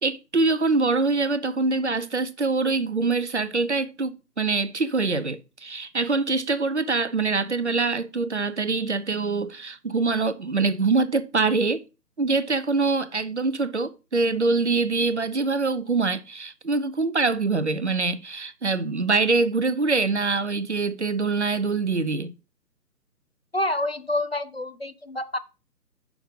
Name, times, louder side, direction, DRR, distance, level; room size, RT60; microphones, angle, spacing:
voice 1, 0.0-11.8 12.2-22.3, right 3 dB, 45° right, 0.5 m, -24 dB
voice 2, 23.5-25.4, left 1 dB, 40° left, 0.4 m, -27 dB
6.1 x 5.9 x 5.3 m
figure-of-eight pair, 150°, 50 cm